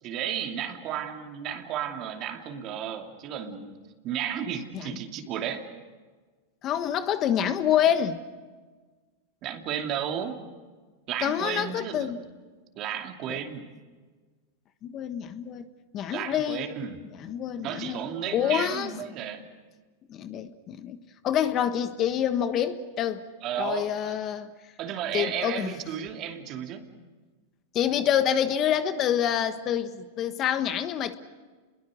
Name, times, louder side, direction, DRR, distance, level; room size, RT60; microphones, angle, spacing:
voice 1, 0.0-3.8 4.0-5.6 9.4-10.4 11.1-12.1 12.7-13.7 16.1-17.0 17.6-19.4 23.4-24.2 24.8-26.9, right 9 dB, 45° right, 4 dB, 2.7 m, -33 dB
voice 2, 6.6-8.2 11.2-12.2 13.3-13.4 14.8-15.6 15.9-16.6 17.1-18.0 18.3-18.9 20.1-21.0 21.2-23.2 23.6-24.5 25.1-25.7 27.7-31.2, left 9 dB, 40° left, 10 dB, 1.4 m, -27 dB
29.5 x 22.0 x 6.4 m, 1.4 s
hypercardioid pair, 115°, 0 cm